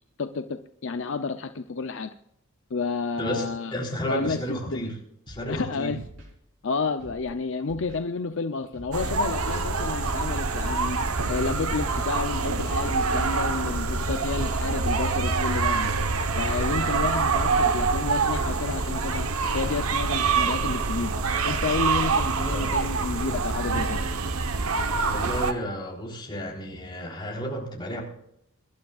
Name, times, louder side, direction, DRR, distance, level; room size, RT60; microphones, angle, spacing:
voice 1, 0.2-2.1 2.7-3.7 4.0-4.9 5.5-6.0 6.6-11.0 11.3-15.9 16.4-19.3 19.5-21.1 21.4-24.0, left 4 dB, 60° left, 9 dB, 0.6 m, -30 dB
voice 2, 3.2-5.0 5.3-6.0 22.5-22.8 25.0-28.0, equal, 20° left, -2 dB, 3.8 m, -32 dB
Scratching (performance technique), 5.3-5.6 6.0-6.3 7.0-7.3 7.7-8.0 8.7-9.1 9.4-9.8 10.4-10.8 11.1-11.4, equal, 60° right, 3.8 m, -45 dB
sound 1, 8.9-25.5, right 4 dB, 80° right, 1.1 m, -26 dB
23.5 x 12.0 x 2.4 m, 0.74 s
head